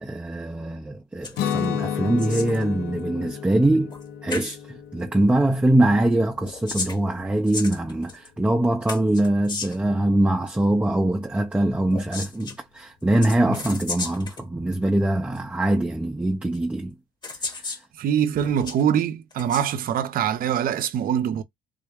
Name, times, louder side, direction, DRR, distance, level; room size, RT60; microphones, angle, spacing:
voice 1, 0.0-3.9 4.2-16.9 17.4-17.7, right 1 dB, 5° right, 0.4 m, -23 dB
sound 1, 1.2-1.7 1.9-2.6 3.9-4.0 4.3-4.6 6.3-8.3 8.9-9.9 11.9-12.6 13.2-14.4 15.4-15.5 16.5-16.6 17.2-17.8 18.3-18.8 19.3-19.7, left 3 dB, 25° left, 1.0 m, -34 dB
Guitar, 1.3-7.2, left 8 dB, 75° left, 0.6 m, -32 dB
voice 2, 18.0-21.4, right 9 dB, 60° right, 0.6 m, -24 dB
3.8 x 2.2 x 3.4 m
cardioid pair, 110°, 17 cm